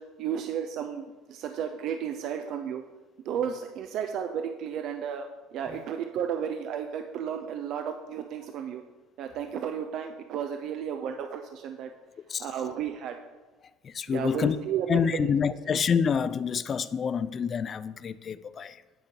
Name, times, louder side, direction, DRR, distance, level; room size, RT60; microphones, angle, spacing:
voice 1, 0.0-2.8 3.2-8.8 9.2-11.9 12.4-13.2 14.1-15.3, right 8 dB, 60° right, 6 dB, 0.4 m, -33 dB
voice 2, 13.8-14.6 14.9-18.8, left 7 dB, 40° left, 15 dB, 0.3 m, -27 dB
9.2 x 3.7 x 4.4 m, 1.2 s
hypercardioid pair, 75°, 0 cm